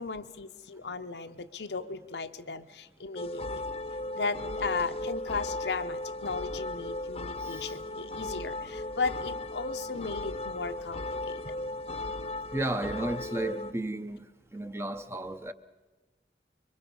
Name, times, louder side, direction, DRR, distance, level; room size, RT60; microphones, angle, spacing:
voice 1, 0.0-3.6 4.1-11.5, left 4 dB, 80° left, 0.8 m, -36 dB
sound 1, 3.2-13.7, left 2 dB, 35° left, 0.8 m, -36 dB
voice 2, 7.4-7.8 12.5-14.3 14.5-15.5, right 1 dB, 15° right, 0.7 m, -33 dB
24.5 x 23.0 x 5.4 m
head